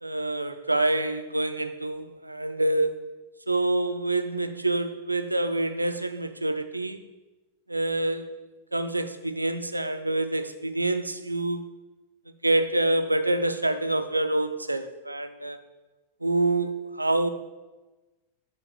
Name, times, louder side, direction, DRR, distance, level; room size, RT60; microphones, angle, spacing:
voice 1, 0.0-3.1 3.5-7.0 7.7-8.3 8.7-11.7 12.4-15.6 16.2-17.3, right 2 dB, 85° right, 10 dB, 0.4 m, -26 dB
6.1 x 4.5 x 6.5 m, 1.1 s
figure-of-eight pair, 90°, 0 cm